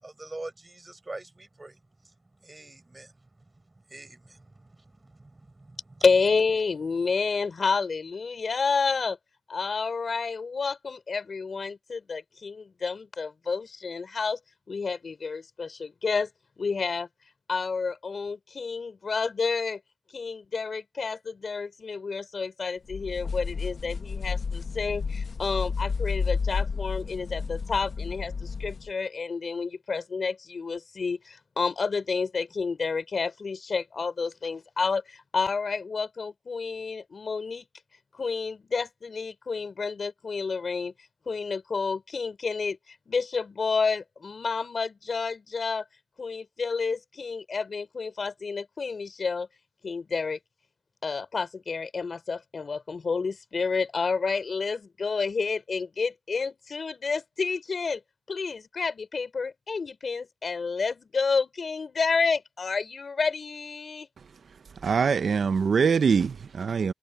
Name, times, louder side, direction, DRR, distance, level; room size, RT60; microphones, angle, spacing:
voice 1, 0.0-2.1 2.4-3.1 3.9-5.8, right 2 dB, 25° right, 5.4 m, -44 dB
voice 2, 6.0-9.2 9.5-14.4 14.7-16.3 16.6-17.1 17.5-19.8 20.1-37.7 38.1-45.9 46.2-49.5 49.8-50.4 51.0-58.0 58.3-64.1, left 4 dB, 60° left, 3.9 m, -30 dB
sound 1, 22.9-28.9, left 5 dB, 75° left, 1.2 m, -31 dB
voice 3, 64.8-66.9, right 6 dB, 85° right, 0.5 m, -23 dB
wide cardioid pair, 120°, 0 cm